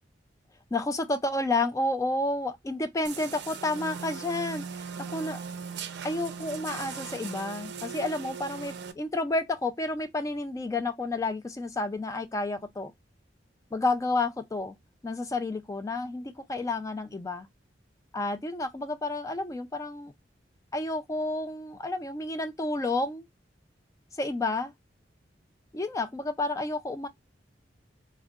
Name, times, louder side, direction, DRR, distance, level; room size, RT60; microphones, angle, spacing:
voice 1, 0.7-5.4 6.0-12.9 13.7-14.7 15.0-17.5 18.1-20.1 20.7-23.3 24.2-24.7 25.7-27.1, left 2 dB, 20° left, 0.3 m, -30 dB
sound 1, 3.0-8.9, right 6 dB, 65° right, 0.5 m, -39 dB
3.7 x 2.2 x 2.3 m
head